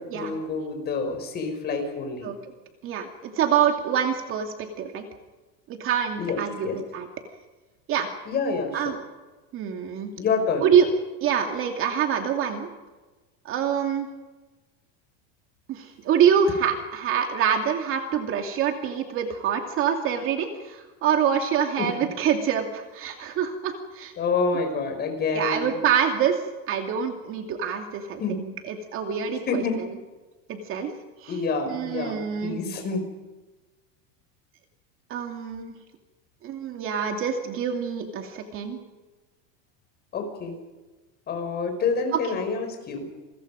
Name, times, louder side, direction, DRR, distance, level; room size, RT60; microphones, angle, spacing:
voice 1, 0.0-2.3 6.2-6.4 6.6-6.8 8.3-9.0 10.2-10.7 21.8-21.9 24.2-25.7 28.2-28.4 29.5-29.8 31.3-33.1 40.1-40.6 41.3-43.1, left 4 dB, 25° left, 5 dB, 6.0 m, -27 dB
voice 2, 2.8-5.0 5.7-7.1 7.9-8.1 8.7-8.9 9.5-10.1 10.6-10.9 11.2-12.7 13.4-14.1 15.7-24.1 25.3-26.4 26.7-29.6 30.5-30.9 31.6-32.6 35.1-35.7 36.4-38.8 42.1-42.2, right 8 dB, 35° right, 4 dB, 2.6 m, -25 dB
29.0 x 23.0 x 5.2 m, 1.2 s
supercardioid pair, 160°, 38 cm